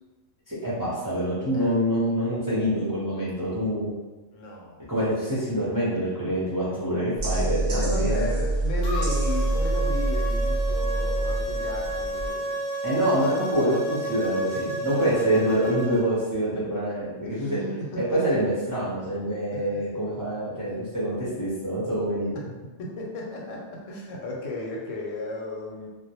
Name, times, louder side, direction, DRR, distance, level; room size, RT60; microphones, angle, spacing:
voice 1, 0.5-3.9 4.9-8.3 12.8-17.6 18.1-22.4, equal, 25° right, -10 dB, 0.5 m, -26 dB
voice 2, 4.3-4.9 7.8-12.7 15.0-15.4 17.3-18.4 19.5-19.9 22.8-25.9, left 2 dB, 90° left, -2 dB, 0.9 m, -34 dB
sound 1, 7.2-12.3, right 2 dB, 60° right, 0.7 m, -26 dB
sound 2, 8.8-16.0, right 1 dB, 60° left, 0.6 m, -31 dB
2.2 x 2.0 x 2.8 m, 1.2 s
omnidirectional pair, 1.3 m